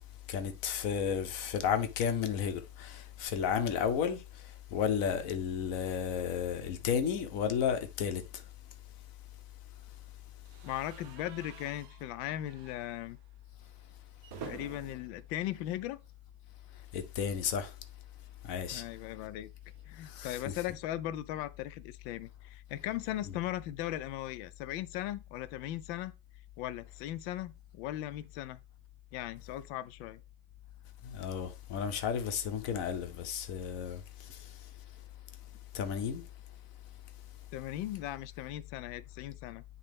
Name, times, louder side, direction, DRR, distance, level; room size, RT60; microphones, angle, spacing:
voice 1, 0.3-4.2 4.7-8.2 16.9-17.7 18.4-18.8 20.0-20.6 31.0-34.0 34.3-34.4 35.7-36.2, left 7 dB, 55° left, 1.0 m, -32 dB
sound 1, 10.5-16.5 16.8-17.0 17.2-17.3 18.6-20.9, right 7 dB, 65° right, 1.0 m, -52 dB
voice 2, 10.6-13.2 14.4-16.0 18.7-19.5 19.9-26.1 26.6-28.6 29.1-30.2 37.5-39.6, left 13 dB, 75° left, 1.3 m, -38 dB
9.6 x 3.4 x 3.4 m
omnidirectional pair, 2.2 m